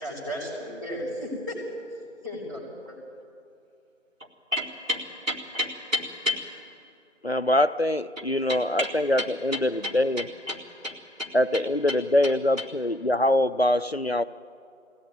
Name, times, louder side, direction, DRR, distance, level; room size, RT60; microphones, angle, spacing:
voice 1, 0.0-1.5 2.2-3.0, equal, 15° right, -9 dB, 4.3 m, -34 dB
voice 2, 4.5-6.4 8.2-8.3 8.5-8.9 9.2-11.6 11.9-12.0 12.2-12.7, left 1 dB, 85° right, -2 dB, 4.4 m, -32 dB
voice 3, 7.2-10.2 11.3-14.2, left 1 dB, 55° left, 13 dB, 0.5 m, -24 dB
23.0 x 17.0 x 9.4 m, 2.4 s
figure-of-eight pair, 175°, 38 cm